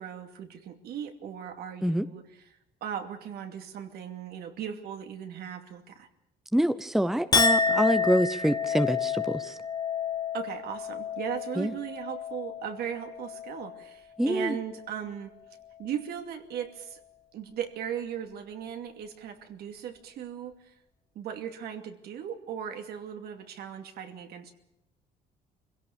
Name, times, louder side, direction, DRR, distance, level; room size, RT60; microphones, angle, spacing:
voice 1, 0.0-2.2 2.8-6.1 10.3-15.3 15.8-17.0 17.3-20.6 21.1-24.5, right 9 dB, 70° right, 5 dB, 2.6 m, -37 dB
voice 2, 6.5-9.6 11.6-11.7 14.2-14.6, equal, ahead, 12 dB, 0.8 m, -26 dB
Chink clink, 7.3-13.9 14.3-14.8, left 5 dB, 25° left, 1.0 m, -30 dB
24.0 x 17.0 x 7.1 m, 0.85 s
cardioid pair, 110°, 17 cm